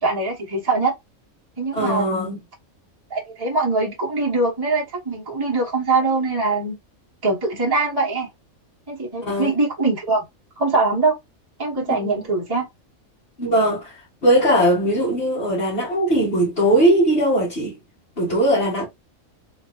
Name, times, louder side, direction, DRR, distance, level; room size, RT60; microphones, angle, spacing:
voice 1, 0.0-0.9 1.6-2.4 3.1-6.8 7.2-8.3 8.9-10.2 10.6-11.2 11.6-12.7, right 3 dB, 15° right, 1.2 m, -22 dB
voice 2, 1.7-2.4 9.2-9.5 11.9-12.2 13.4-13.9 14.2-17.8 18.2-18.9, right 1 dB, 45° left, 2.0 m, -19 dB
3.9 x 3.6 x 3.2 m
omnidirectional pair, 1.4 m